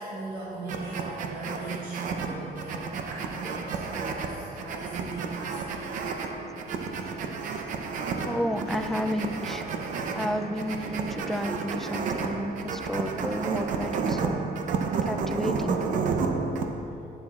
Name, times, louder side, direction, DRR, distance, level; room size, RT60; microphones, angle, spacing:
voice 1, 0.0-5.9, right 3 dB, 80° right, -6 dB, 1.4 m, -38 dB
sound 1, 0.7-16.7, right 5 dB, 60° right, 0.7 m, -31 dB
sound 2, 5.9-12.6, right 3 dB, 45° right, 1.6 m, -45 dB
voice 2, 8.2-9.6 10.1-14.4 15.1-15.9, equal, ahead, 7 dB, 0.3 m, -31 dB
11.5 x 9.6 x 2.4 m, 2.7 s
cardioid pair, 165°, 15 cm